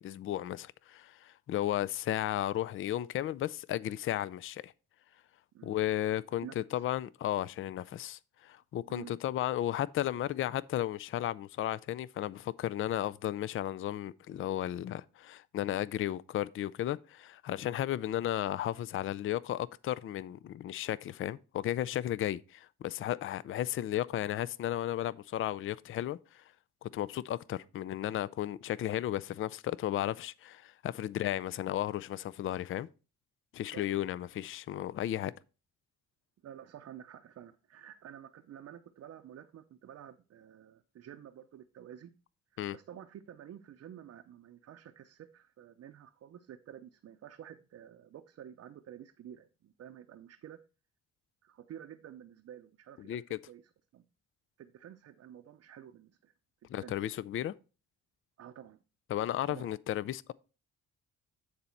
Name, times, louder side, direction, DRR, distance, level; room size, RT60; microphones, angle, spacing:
voice 1, 0.0-4.7 5.6-26.4 26.8-32.9 33.5-35.3 42.6-42.8 53.1-53.4 56.7-57.5 59.1-60.3, left 12 dB, 45° left, 0.4 m, -34 dB
voice 2, 6.4-6.8 8.9-9.2 33.7-33.9 36.4-42.1 42.5-50.6 51.4-53.6 53.9-54.0 54.6-56.3 56.8-56.9 58.4-58.8 59.5-59.7, right 10 dB, 55° right, 0.6 m, -50 dB
9.4 x 4.2 x 4.4 m
cardioid pair, 90°, 30 cm